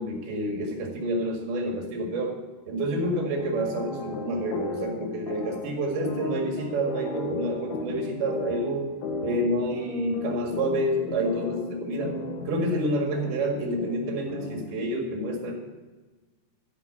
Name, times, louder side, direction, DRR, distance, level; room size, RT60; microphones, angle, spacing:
voice 1, 0.0-2.4 2.7-8.9 9.2-12.2 12.5-15.5, right 1 dB, 80° right, 1 dB, 3.9 m, -28 dB
sound 1, 3.0-14.8, left 3 dB, 85° left, 3.5 m, -35 dB
13.5 x 6.2 x 7.4 m, 1.3 s
omnidirectional pair, 4.4 m